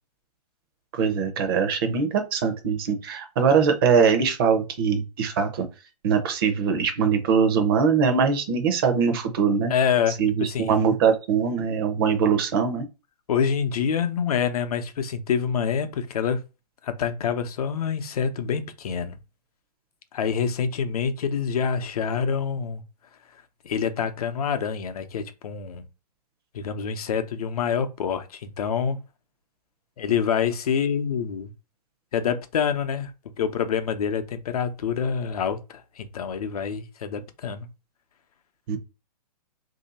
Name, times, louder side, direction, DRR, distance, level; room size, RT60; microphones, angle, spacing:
voice 1, 0.9-5.7 6.0-9.7 10.2-12.9 38.7-38.8, right 6 dB, 35° right, 0.7 m, -22 dB
voice 2, 9.7-10.8 13.3-16.4 16.8-19.2 20.1-22.8 23.6-25.8 26.5-29.0 30.0-31.5 32.1-33.1 33.4-35.6 36.0-37.7, left 7 dB, 60° left, 0.7 m, -26 dB
3.1 x 2.8 x 4.1 m
hypercardioid pair, 160°, 21 cm